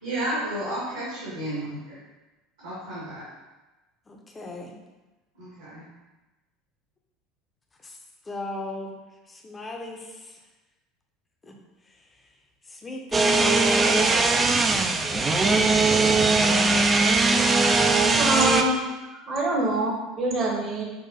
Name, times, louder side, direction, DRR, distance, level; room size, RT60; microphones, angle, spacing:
voice 1, 0.0-2.0 2.6-3.3 5.3-5.8, right 1 dB, 70° right, -9 dB, 1.4 m, -32 dB
voice 2, 4.1-4.8 7.8-8.0 8.3-8.9 9.3-10.4 11.4-11.6 12.7-14.7 15.0-16.3, left 2 dB, 20° left, 1 dB, 0.6 m, -37 dB
sound 1, 13.1-18.6, right 3 dB, 20° right, 0.3 m, -20 dB
voice 3, 18.1-18.8 19.2-20.8, right 2 dB, 40° right, -1 dB, 0.9 m, -25 dB
5.4 x 2.5 x 2.7 m, 1.1 s
figure-of-eight pair, 70°, 0 cm